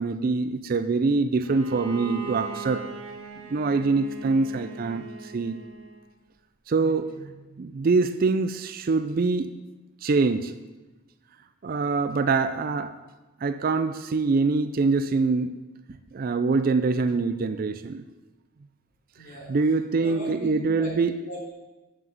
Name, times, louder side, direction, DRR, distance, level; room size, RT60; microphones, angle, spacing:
voice 1, 0.0-2.9 3.5-5.6 6.7-7.3 7.6-9.5 10.0-10.5 11.6-13.0 13.4-15.5 16.1-18.0 19.5-21.1, right 4 dB, 40° right, 11 dB, 0.4 m, -24 dB
Bowed string instrument, 1.4-6.1, right 5 dB, 70° right, 1.1 m, -40 dB
voice 2, 19.1-19.5 20.0-21.5, equal, 40° left, -3 dB, 3.1 m, -39 dB
7.5 x 5.9 x 7.8 m, 1.1 s
head